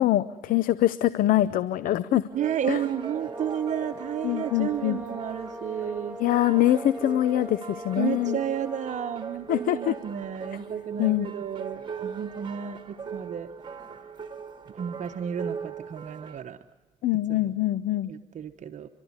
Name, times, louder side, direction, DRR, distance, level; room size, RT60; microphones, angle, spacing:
voice 1, 0.0-2.2 2.7-2.8 4.2-5.0 6.2-8.4 9.5-9.9 11.0-11.3 17.0-18.1, left 13 dB, 80° left, 17 dB, 0.7 m, -24 dB
sound 1, 2.3-16.4, right 6 dB, 35° right, 2.4 m, -39 dB
voice 2, 2.3-6.4 7.0-7.2 8.0-13.5 14.7-16.6 17.3-17.5 18.1-18.9, right 9 dB, 60° right, 7 dB, 1.0 m, -32 dB
sound 2, 2.7-9.4, left 1 dB, 10° right, 1.2 m, -41 dB
30.0 x 12.5 x 9.6 m, 1.1 s
cardioid pair, 75°, 14 cm